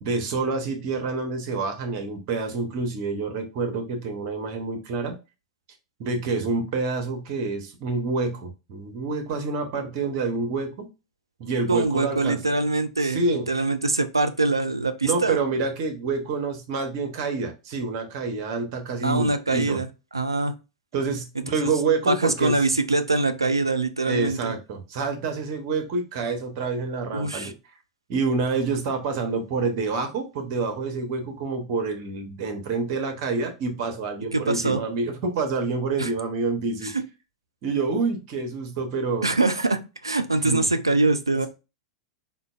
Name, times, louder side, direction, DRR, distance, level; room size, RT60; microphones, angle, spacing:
voice 1, 0.0-5.2 6.0-10.9 11.4-12.5 13.0-13.5 15.0-19.8 20.9-22.6 24.1-27.5 28.1-36.9 37.6-39.3 40.4-40.6, right 4 dB, 45° right, 5 dB, 0.8 m, -27 dB
voice 2, 11.7-13.2 13.5-15.4 19.0-19.9 20.1-20.5 21.6-21.7 22.0-24.5 27.1-27.5 34.3-34.8 36.0-36.1 36.8-37.0 39.2-41.5, right 2 dB, 80° right, 10 dB, 0.3 m, -23 dB
3.7 x 2.2 x 2.3 m, 0.28 s
figure-of-eight pair, 90°, 2 cm